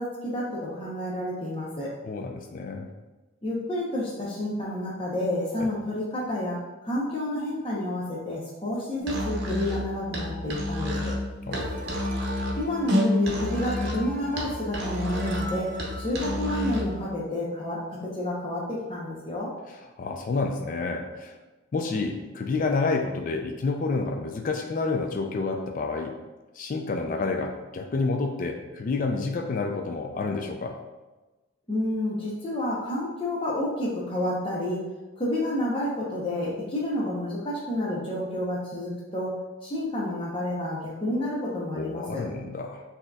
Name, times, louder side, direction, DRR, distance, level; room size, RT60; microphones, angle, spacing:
voice 1, 0.0-1.9 3.4-11.1 12.6-15.7 16.0-19.5 31.7-34.8 35.2-39.3 39.6-42.2, left 1 dB, 25° left, -6 dB, 0.7 m, -30 dB
voice 2, 2.0-2.9 5.6-5.7 11.5-12.0 20.0-21.4 21.7-26.1 26.6-30.8 41.7-42.8, left 3 dB, 45° left, 3 dB, 0.3 m, -29 dB
Musical instrument, 9.0-17.0, left 1 dB, 55° right, 0.8 m, -29 dB
sound 1, 11.5-17.0, right 1 dB, 40° right, 0.4 m, -41 dB
6.2 x 2.8 x 2.3 m, 1.1 s
head